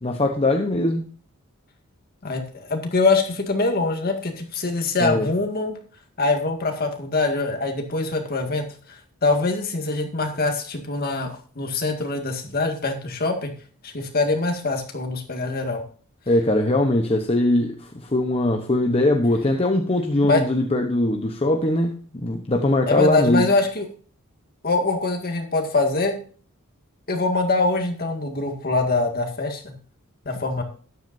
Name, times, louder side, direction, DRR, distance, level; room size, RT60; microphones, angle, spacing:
voice 1, 0.0-1.0 5.0-5.3 16.3-21.9 22.2-23.5, left 1 dB, 25° left, 0.9 m, -21 dB
voice 2, 2.2-5.8 6.2-13.5 13.8-15.8 20.2-20.4 22.9-23.9 24.6-26.2 27.1-29.7 30.3-30.6, left 3 dB, 45° left, 2.0 m, -23 dB
13.0 x 10.5 x 2.7 m
head